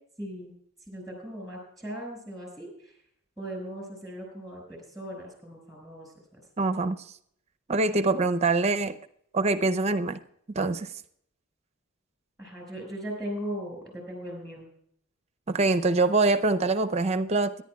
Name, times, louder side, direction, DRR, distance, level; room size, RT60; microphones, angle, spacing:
voice 1, 0.2-0.5 0.9-2.7 3.4-6.4 12.4-14.7, equal, ahead, 2 dB, 5.7 m, -38 dB
voice 2, 6.6-7.0 7.7-8.9 9.3-10.2 10.5-10.9 15.5-17.6, right 3 dB, 30° right, 10 dB, 0.6 m, -24 dB
23.0 x 11.0 x 2.3 m, 0.67 s
head